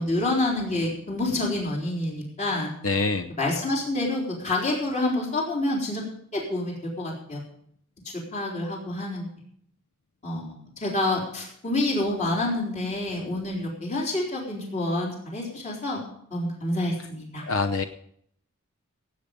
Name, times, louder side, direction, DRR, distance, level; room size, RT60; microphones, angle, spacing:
voice 1, 0.0-2.7 3.3-6.0 6.3-7.4 8.3-9.3 10.2-16.0 16.3-17.4, left 2 dB, 35° left, -2 dB, 3.9 m, -28 dB
voice 2, 2.8-3.3 17.5-17.8, left 3 dB, 75° left, 9 dB, 0.7 m, -25 dB
17.0 x 8.8 x 5.2 m, 0.66 s
head